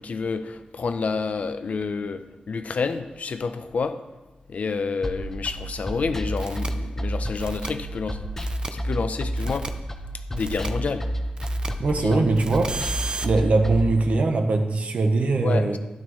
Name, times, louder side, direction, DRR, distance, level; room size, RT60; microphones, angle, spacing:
voice 1, 0.0-4.0 4.5-8.2 8.7-9.7 10.3-11.1 12.0-12.2 15.4-15.8, left 4 dB, 60° left, 0.7 m, -29 dB
sound 1, 5.0-13.9, equal, 15° left, 0.8 m, -30 dB
sound 2, 6.4-6.7 7.4-7.7 8.4-8.7 9.4-9.7 10.4-10.7 11.4-11.7 12.4-13.3, right 3 dB, 35° right, 0.6 m, -34 dB
voice 2, 11.8-12.7 13.2-15.8, right 3 dB, 55° right, 1.0 m, -21 dB
12.0 x 11.0 x 3.2 m
wide cardioid pair, 135°, 3 cm